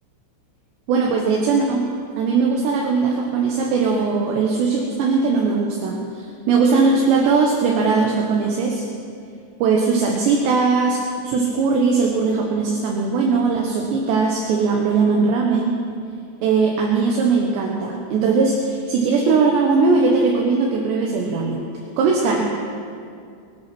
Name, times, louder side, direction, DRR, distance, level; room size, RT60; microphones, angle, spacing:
voice 1, 0.9-1.8 2.2-8.8 9.6-15.8 16.4-21.6 22.0-22.4, right 4 dB, 75° right, 0 dB, 3.3 m, -19 dB
23.5 x 9.5 x 6.1 m, 2.3 s
omnidirectional pair, 5.2 m